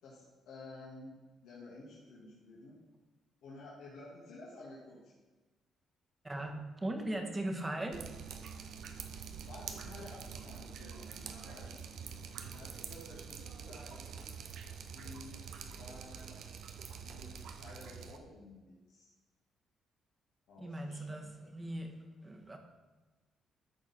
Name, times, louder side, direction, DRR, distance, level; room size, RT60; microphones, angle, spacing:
voice 1, 0.0-1.1 1.4-2.8 3.4-5.1 9.4-11.8 12.5-14.0 14.9-16.4 16.9-19.1 20.5-21.1 21.4-21.5, left 2 dB, 85° left, -7 dB, 2.2 m, -52 dB
voice 2, 6.2-8.1 20.6-22.6, right 1 dB, 20° right, 3 dB, 1.3 m, -39 dB
Drip, 7.9-18.2, right 7 dB, 75° right, 0.7 m, -46 dB
13.5 x 4.5 x 4.4 m, 1.2 s
cardioid pair, 90°, 0 cm